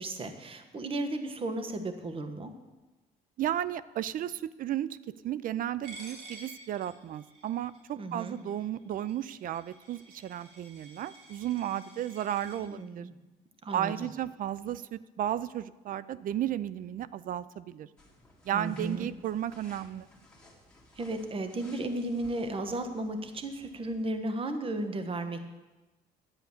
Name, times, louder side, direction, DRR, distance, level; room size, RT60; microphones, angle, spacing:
voice 1, 0.0-2.5 7.9-8.4 12.6-13.2 13.6-14.1 18.5-19.1 21.0-25.4, right 2 dB, 30° right, 8 dB, 1.3 m, -34 dB
voice 2, 3.4-5.0 5.2-13.1 13.7-17.9 18.4-20.1, right 11 dB, 55° right, 18 dB, 0.5 m, -34 dB
Coin (dropping), 5.8-12.6, right 2 dB, 80° right, 3.1 m, -51 dB
sound 1, 18.0-24.2, left 1 dB, 5° left, 2.5 m, -58 dB
10.5 x 8.0 x 7.2 m, 1.1 s
cardioid pair, 110°, 17 cm